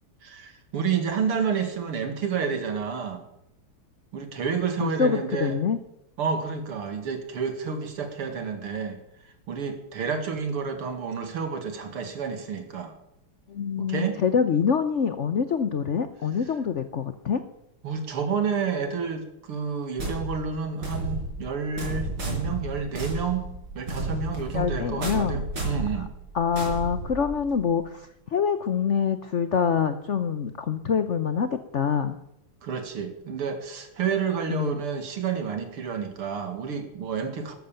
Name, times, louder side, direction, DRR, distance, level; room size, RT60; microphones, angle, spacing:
voice 1, 0.2-3.2 4.1-5.6 6.2-9.0 9.5-12.9 13.8-14.2 17.8-26.1 32.6-37.5, right 6 dB, 80° right, 7 dB, 2.9 m, -30 dB
voice 2, 4.8-5.8 13.5-17.4 24.5-25.4 26.3-32.2 34.5-34.8, left 6 dB, 75° left, 10 dB, 0.6 m, -25 dB
sound 1, 20.0-27.6, right 2 dB, 50° right, 5.8 m, -32 dB
13.5 x 13.0 x 7.1 m, 0.80 s
omnidirectional pair, 2.4 m